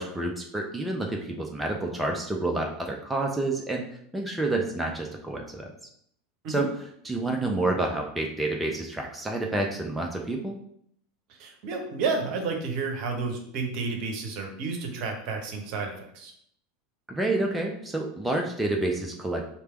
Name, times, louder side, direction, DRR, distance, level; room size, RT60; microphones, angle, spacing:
voice 1, 0.0-3.8 4.1-5.7 6.5-6.7 7.0-10.6 17.1-19.4, right 2 dB, 10° right, 1 dB, 0.5 m, -29 dB
voice 2, 11.4-16.3, right 4 dB, 50° right, 3 dB, 0.8 m, -31 dB
3.3 x 2.9 x 4.3 m, 0.68 s
figure-of-eight pair, 80°, 0 cm